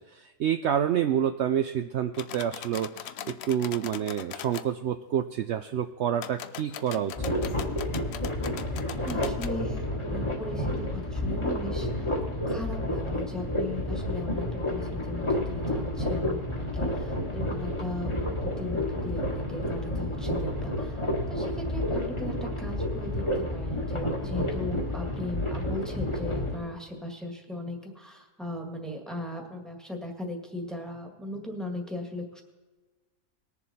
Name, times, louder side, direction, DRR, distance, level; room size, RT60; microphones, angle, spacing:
voice 1, 0.1-3.1 3.5-7.4, right 9 dB, 70° right, 8 dB, 0.6 m, -28 dB
sound 1, 2.1-4.7 6.1-9.5, left 9 dB, 70° left, 0.6 m, -41 dB
sound 2, 7.2-26.6, left 1 dB, 20° left, 1.5 m, -30 dB
voice 2, 9.0-12.1 12.4-21.0 21.3-32.4, left 1 dB, ahead, 2 dB, 1.6 m, -38 dB
20.5 x 7.1 x 4.2 m, 1.3 s
omnidirectional pair, 1.7 m